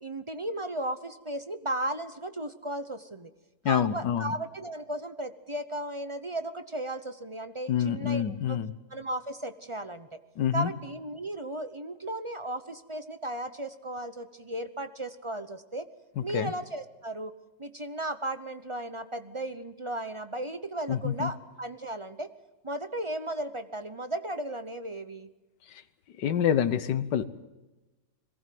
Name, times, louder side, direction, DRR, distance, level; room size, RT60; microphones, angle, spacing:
voice 1, 0.0-3.3 3.6-8.6 8.9-10.2 10.5-15.9 16.2-17.3 17.6-22.3 22.6-25.3, right 1 dB, 30° right, 10 dB, 0.6 m, -35 dB
voice 2, 3.6-4.3 7.7-8.7 10.4-10.7 16.2-16.5 20.9-21.3 26.2-27.3, left 9 dB, 90° left, 13 dB, 1.7 m, -27 dB
22.0 x 18.0 x 7.7 m, 1.1 s
omnidirectional pair, 1.8 m